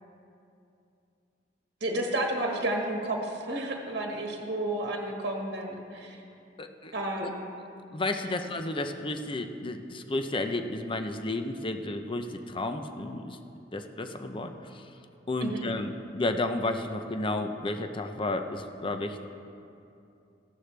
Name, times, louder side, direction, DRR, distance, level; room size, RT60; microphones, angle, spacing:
voice 1, 1.8-6.2 6.9-7.4 8.2-8.4 15.4-15.7, right 1 dB, 65° right, 1 dB, 1.4 m, -31 dB
voice 2, 6.6-6.9 7.2-7.3 7.9-13.4 13.7-14.9 15.3-19.3, left 2 dB, 30° left, 7 dB, 0.6 m, -32 dB
15.0 x 11.5 x 3.3 m, 2.7 s
head